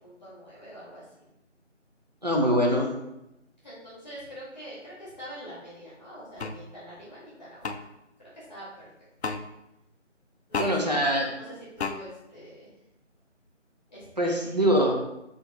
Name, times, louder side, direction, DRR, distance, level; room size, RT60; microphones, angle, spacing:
voice 1, 0.0-1.3 3.6-7.7 8.2-8.9 10.5-10.9 11.4-12.7 13.9-14.8, equal, 10° left, -9 dB, 1.3 m, -44 dB
voice 2, 2.2-2.9 10.6-11.3 14.2-14.9, equal, 35° right, 0 dB, 0.6 m, -23 dB
sound 1, 6.4-6.6 7.6-7.8 9.2-9.4 10.5-10.7 11.8-12.0, left 4 dB, 65° left, 0.5 m, -30 dB
3.6 x 3.5 x 3.8 m, 0.88 s
figure-of-eight pair, 165°, 37 cm